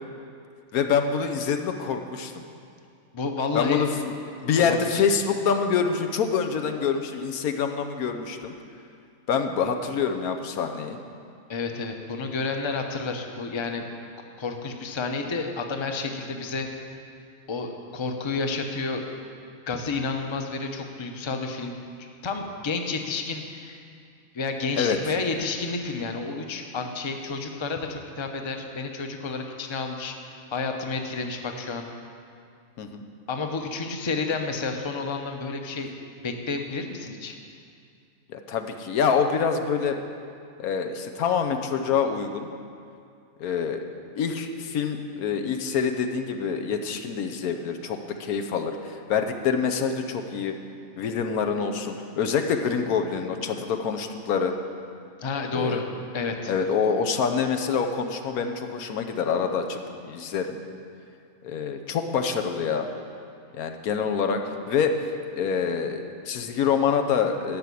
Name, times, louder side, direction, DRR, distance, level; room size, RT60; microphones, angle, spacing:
voice 1, 0.7-2.4 3.5-4.1 4.4-8.5 9.3-11.0 24.8-25.0 32.8-33.0 38.3-40.0 40.6-42.5 43.4-43.8 44.2-50.5 51.0-54.5 55.5-55.9 56.5-59.8 60.0-60.6 61.4-62.9 63.5-64.4 64.7-64.9 65.3-67.6, left 6 dB, 90° left, 6 dB, 1.3 m, -26 dB
voice 2, 3.1-3.9 4.6-5.0 11.5-13.8 14.4-17.0 17.5-19.2 19.7-21.8 22.2-23.8 24.3-30.1 30.5-31.9 33.3-35.9 36.2-37.4 55.2-55.8 56.1-56.5, left 4 dB, 25° left, 4 dB, 0.6 m, -30 dB
12.0 x 6.2 x 8.3 m, 2.4 s
omnidirectional pair, 1.5 m